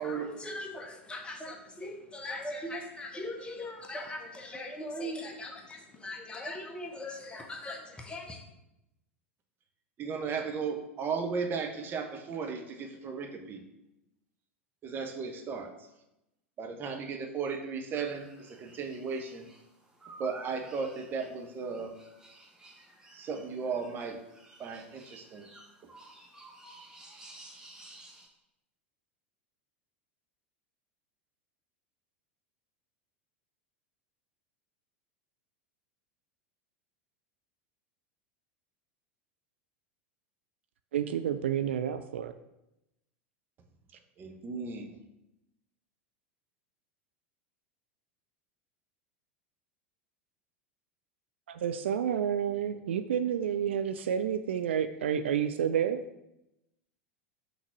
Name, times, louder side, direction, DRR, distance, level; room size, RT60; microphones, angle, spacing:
voice 1, 0.0-8.4, left 1 dB, 15° left, 3 dB, 1.1 m, -40 dB
voice 2, 10.0-13.6 14.8-15.7 16.6-19.5 20.2-21.9 23.1-24.2 24.6-25.5 44.2-44.9, right 5 dB, 30° right, 4 dB, 1.1 m, -35 dB
sound 1, 17.9-28.3, right 2 dB, 10° right, 1.2 m, -53 dB
voice 3, 40.9-42.3 51.5-56.0, right 9 dB, 65° right, 9 dB, 0.4 m, -30 dB
6.0 x 4.0 x 5.9 m, 0.88 s
figure-of-eight pair, 85°, 7 cm